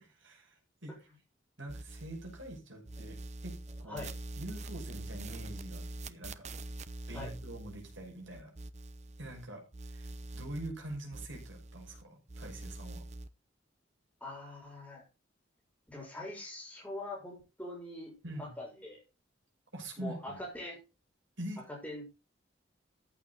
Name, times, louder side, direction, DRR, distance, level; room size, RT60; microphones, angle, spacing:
voice 1, 0.2-0.5 0.8-0.9 1.6-3.5 3.8-4.1 4.4-6.5 7.1-8.5 9.2-9.6 9.9-10.1 10.3-13.0 18.2-18.5 19.7-20.4 21.4-21.6, right 1 dB, 65° right, 1 dB, 6.0 m, -44 dB
sound 1, 1.7-2.6 2.8-9.5 9.7-12.0 12.3-13.3, right 2 dB, 35° right, 0.7 m, -44 dB
voice 2, 14.2-15.0 15.9-19.0 20.0-20.8 21.7-22.1, left 1 dB, 5° left, -2 dB, 6.7 m, -43 dB
14.5 x 8.9 x 4.0 m, 0.29 s
head